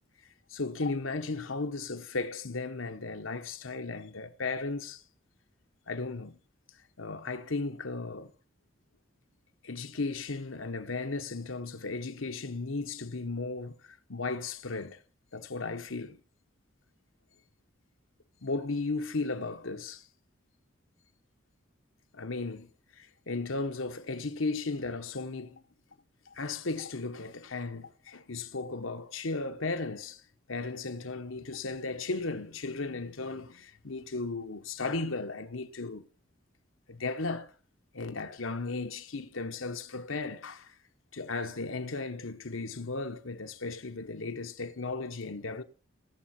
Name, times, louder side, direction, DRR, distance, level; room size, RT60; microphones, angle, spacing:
voice 1, 0.5-5.0 5.9-6.4 7.0-8.3 9.6-15.0 15.3-16.2 18.4-20.0 22.1-22.7 23.0-25.6 26.3-30.2 30.5-36.0 36.9-37.5 37.9-40.7 41.1-45.6, left 3 dB, 90° left, 1.2 m, -35 dB
19.5 x 7.6 x 4.4 m
head